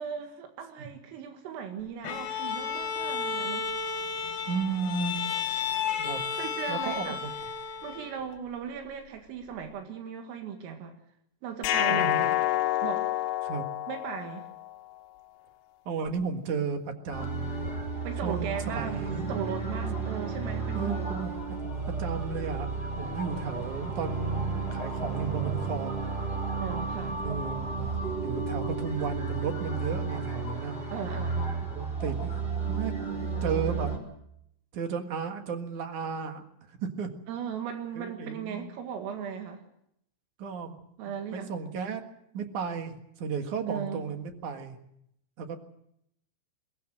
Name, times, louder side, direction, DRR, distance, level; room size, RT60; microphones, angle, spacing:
voice 1, 0.0-3.7 6.3-7.2 7.8-10.9 11.4-12.4 12.8-13.1 13.9-14.5 18.0-21.1 26.6-27.2 30.9-31.7 37.3-39.6 41.0-41.5 43.7-44.0, right 7 dB, 85° right, 5 dB, 4.4 m, -37 dB
Bowed string instrument, 2.0-8.3, left 6 dB, 65° left, 4.1 m, -33 dB
voice 2, 4.5-5.2 6.0-6.2 6.7-7.3 11.9-12.2 13.4-13.6 15.9-17.5 18.2-19.4 20.7-21.4 22.0-22.7 23.0-26.1 27.2-30.8 31.7-33.9 34.7-36.4 36.7-37.1 38.0-38.7 40.4-40.8 41.1-42.0 42.3-44.8 45.4-45.6, right 5 dB, 60° right, 6 dB, 2.2 m, -34 dB
sound 1, 11.6-14.7, left 15 dB, 80° left, 3.4 m, -28 dB
sound 2, 17.1-34.0, right 4 dB, 10° right, 4.8 m, -33 dB
22.5 x 19.5 x 7.6 m, 0.75 s
omnidirectional pair, 5.8 m